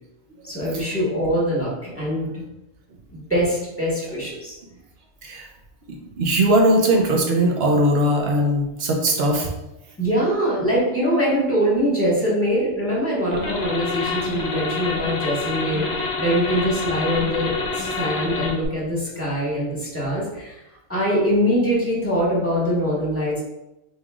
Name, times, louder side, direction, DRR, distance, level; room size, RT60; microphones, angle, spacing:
voice 1, 0.4-2.4 3.1-4.5 10.0-20.6 20.9-23.4, equal, 10° left, -6 dB, 1.4 m, -23 dB
voice 2, 6.2-9.5, right 1 dB, 50° right, 1 dB, 0.9 m, -19 dB
sound 1, 13.3-18.6, left 3 dB, 55° left, 1.0 m, -27 dB
5.4 x 3.5 x 2.4 m, 0.92 s
omnidirectional pair, 1.4 m